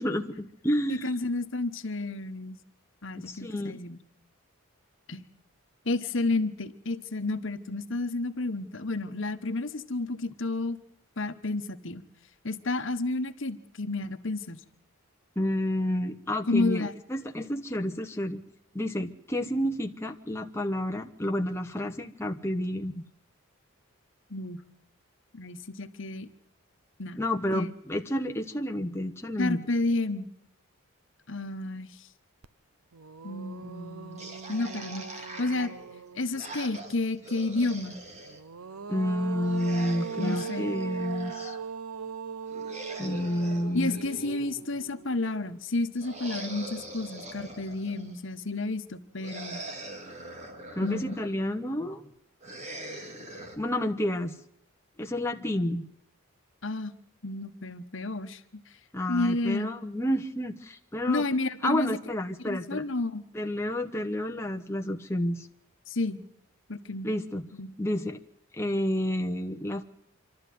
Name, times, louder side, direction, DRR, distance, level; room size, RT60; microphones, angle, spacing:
voice 1, 0.0-1.1 3.1-3.7 15.4-18.4 18.7-23.0 27.2-29.6 38.9-41.5 43.0-44.0 50.7-52.0 53.6-54.3 55.0-55.9 58.9-61.2 61.6-62.8 63.3-65.5 67.0-67.4 67.8-68.2 68.5-69.8, left 1 dB, 10° left, 3 dB, 1.0 m, -30 dB
voice 2, 0.9-2.6 3.0-4.0 5.1-5.2 5.8-10.8 11.2-12.0 12.4-14.6 16.5-16.9 24.3-24.6 25.3-26.3 27.0-27.2 27.5-27.7 29.4-30.3 31.3-32.1 33.2-35.7 36.1-38.0 40.2-40.7 43.7-49.6 50.8-51.2 56.6-56.9 57.2-58.4 59.1-59.7 61.1-62.0 62.4-63.2 65.9-66.2 66.7-67.1 67.5-67.8, left 2 dB, 55° left, 9 dB, 1.2 m, -31 dB
sound 1, 32.4-32.5 32.9-36.6 38.3-45.5, right 5 dB, 85° right, 0.8 m, -39 dB
sound 2, 34.2-38.4 39.4-41.6 42.5-44.8 46.0-48.2 49.2-51.4 52.4-53.6, right 1 dB, 30° right, 2.4 m, -43 dB
26.5 x 12.5 x 9.4 m, 0.72 s
head